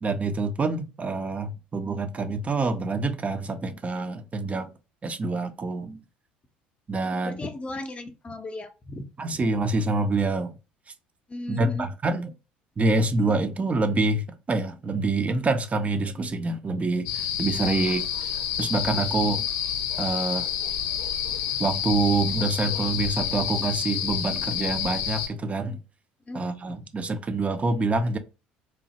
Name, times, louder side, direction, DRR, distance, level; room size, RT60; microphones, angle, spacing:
voice 1, 0.0-4.7 5.0-6.0 6.9-7.4 9.2-10.5 11.5-12.3 12.8-18.0 18.6-19.5 20.0-20.5 21.6-25.8 26.3-28.2, right 3 dB, 30° right, 0.5 m, -26 dB
voice 2, 7.2-9.0 9.3-9.5 11.3-11.9 26.3-26.4, left 2 dB, 25° left, 0.6 m, -36 dB
sound 1, 17.1-25.3, left 9 dB, 70° left, 0.6 m, -29 dB
2.9 x 2.0 x 2.8 m
hypercardioid pair, 65°, 5 cm